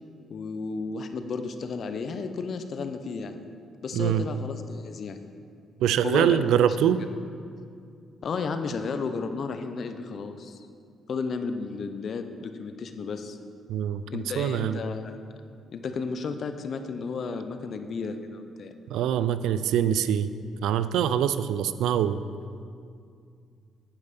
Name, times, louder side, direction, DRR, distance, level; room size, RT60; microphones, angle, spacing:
voice 1, 0.3-3.4 3.8-5.2 6.0-6.4 8.2-10.7 11.1-13.4 14.1-15.2 15.7-18.7, left 4 dB, 55° left, 8 dB, 0.6 m, -33 dB
voice 2, 3.9-4.2 5.8-7.0 13.7-14.8 18.9-20.3 20.6-22.2, right 9 dB, 85° right, 13 dB, 0.3 m, -24 dB
10.0 x 5.4 x 5.3 m, 2.3 s
cardioid pair, 90°, 0 cm